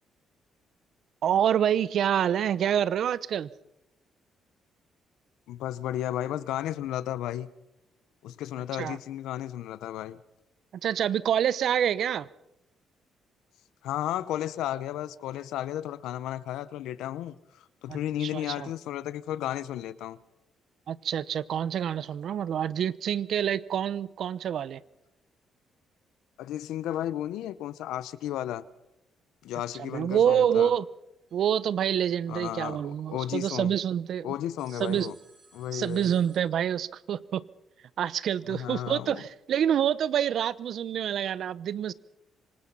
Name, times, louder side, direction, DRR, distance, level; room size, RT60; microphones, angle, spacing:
voice 1, 1.2-3.5 8.8-9.0 10.8-12.3 17.9-18.7 20.9-24.8 29.8-30.9 31.3-34.3 34.8-35.1 35.7-37.4 38.0-41.9, right 9 dB, 65° right, 0.8 m, -27 dB
voice 2, 5.5-7.5 8.2-10.2 13.8-20.2 26.4-28.6 29.4-30.7 32.3-33.7 34.2-35.1 35.5-36.1 38.5-39.2, left 12 dB, 90° left, 0.9 m, -33 dB
sound 1, 31.3-33.5 34.6-36.4, right 3 dB, 40° right, 6.6 m, -62 dB
26.5 x 19.0 x 5.6 m
cardioid pair, 90°, 0 cm